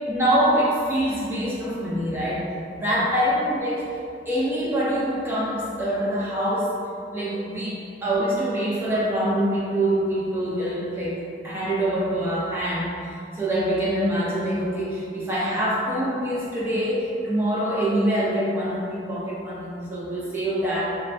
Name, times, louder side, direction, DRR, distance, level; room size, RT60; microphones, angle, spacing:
voice 1, 0.0-2.5 2.7-3.9 4.3-6.7 7.1-12.9 13.3-20.8, right 1 dB, 15° right, -8 dB, 0.6 m, -25 dB
3.5 x 2.1 x 2.4 m, 2.4 s
head